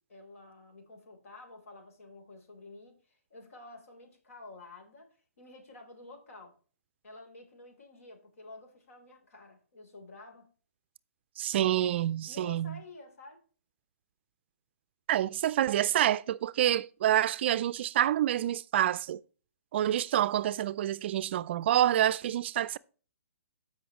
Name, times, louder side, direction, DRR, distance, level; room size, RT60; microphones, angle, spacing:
voice 1, 0.1-6.6 7.0-10.5 12.2-13.4, left 2 dB, 70° left, 3.5 m, -51 dB
voice 2, 11.4-12.8 15.1-19.2 19.7-22.8, right 12 dB, 45° right, 0.4 m, -27 dB
14.5 x 5.5 x 3.0 m
hypercardioid pair, 140°, 8 cm